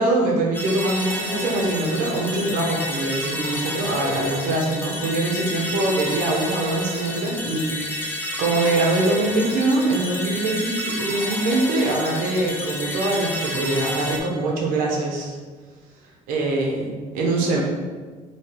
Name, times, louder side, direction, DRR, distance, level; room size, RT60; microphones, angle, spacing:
voice 1, 0.0-15.4 16.3-17.6, right 2 dB, 75° right, -1 dB, 0.9 m, -23 dB
sound 1, 0.5-14.2, left 1 dB, 15° left, 0.5 m, -30 dB
3.2 x 3.1 x 4.5 m, 1.4 s
cardioid pair, 165°, 15 cm